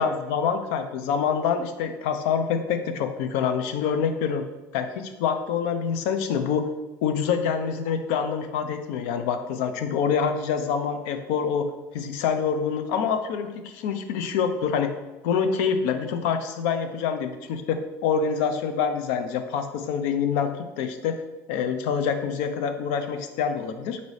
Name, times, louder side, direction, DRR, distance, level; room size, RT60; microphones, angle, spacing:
voice 1, 0.0-4.4 4.7-6.7 7.0-11.7 11.9-14.9 15.2-21.2 21.5-24.0, left 6 dB, 75° left, 8 dB, 0.5 m, -26 dB
4.1 x 2.7 x 4.7 m, 1.1 s
supercardioid pair, 120°, 7 cm